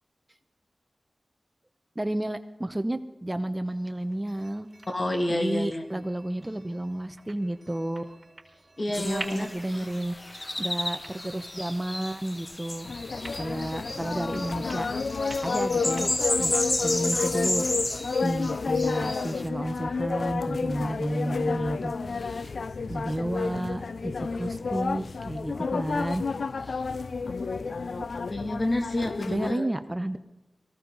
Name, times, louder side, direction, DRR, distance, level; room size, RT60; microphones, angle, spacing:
voice 1, 2.0-4.7 5.3-8.2 9.0-10.1 10.6-12.9 13.4-14.9 15.4-16.1 16.4-16.6 16.8-17.6 18.2-22.5 22.9-26.2 26.6-26.9 28.0-28.1 29.3-30.2, right 1 dB, 20° right, 10 dB, 0.9 m, -31 dB
sound 1, 3.6-16.2, right 2 dB, 40° right, 4.9 m, -49 dB
voice 2, 4.9-5.8 8.8-9.9 28.3-29.7, left 1 dB, 50° left, 3 dB, 2.7 m, -29 dB
sound 2, 8.9-19.5, left 1 dB, 30° left, 1.1 m, -33 dB
sound 3, 12.9-29.5, left 4 dB, 80° left, 0.4 m, -30 dB
18.5 x 16.0 x 4.0 m, 0.98 s
cardioid pair, 50°, 0 cm